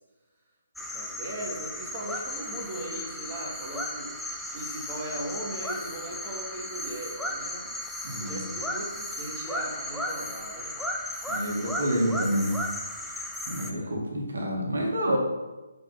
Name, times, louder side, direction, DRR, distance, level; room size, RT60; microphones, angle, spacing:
sound 1, 0.8-13.7, left 1 dB, ahead, 0.7 m, -35 dB
voice 1, 0.8-4.1 4.5-10.8 13.6-14.0, right 1 dB, 20° right, -5 dB, 2.4 m, -38 dB
voice 2, 8.0-8.4 11.3-12.6 13.5-15.2, equal, 70° right, -1 dB, 2.1 m, -28 dB
10.0 x 4.7 x 5.8 m, 1.2 s
figure-of-eight pair, 140°, 0 cm